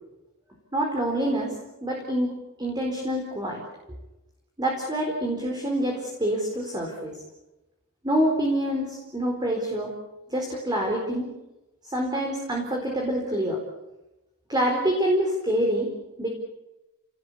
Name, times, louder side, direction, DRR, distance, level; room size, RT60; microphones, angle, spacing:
voice 1, 0.7-1.5 1.8-2.3 2.6-3.6 4.6-7.2 8.0-9.9 10.3-11.3 11.9-13.6 14.5-15.9 16.2-16.3, right 1 dB, 20° right, 0 dB, 4.4 m, -26 dB
29.5 x 19.5 x 8.5 m, 1.0 s
head